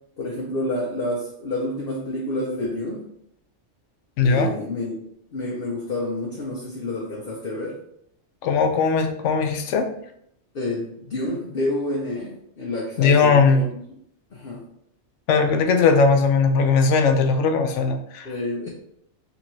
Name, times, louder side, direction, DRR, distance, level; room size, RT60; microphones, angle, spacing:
voice 1, 0.2-3.0 4.2-5.0 5.3-7.8 10.5-13.6 14.3-14.6 18.2-18.7, left 1 dB, 55° left, -4 dB, 1.0 m, -28 dB
voice 2, 4.2-4.5 8.4-9.9 13.0-13.6 15.3-18.3, left 4 dB, 85° left, 6 dB, 0.9 m, -19 dB
3.8 x 3.5 x 3.1 m, 0.71 s
omnidirectional pair, 1.2 m